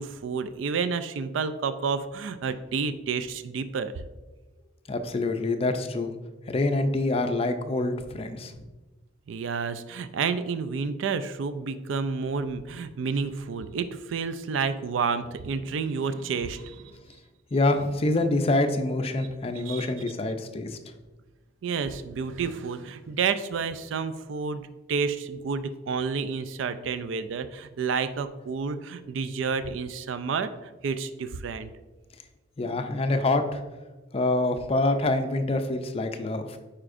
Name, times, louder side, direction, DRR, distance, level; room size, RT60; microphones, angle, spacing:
voice 1, 0.0-3.9 9.3-17.0 19.6-19.9 21.6-30.5 30.8-31.7, right 5 dB, 75° right, 12 dB, 0.4 m, -30 dB
voice 2, 4.9-6.1 6.5-8.5 17.5-20.8 32.6-33.6 34.1-36.6, left 2 dB, 30° left, 7 dB, 0.4 m, -26 dB
9.7 x 4.3 x 2.5 m, 1.2 s
head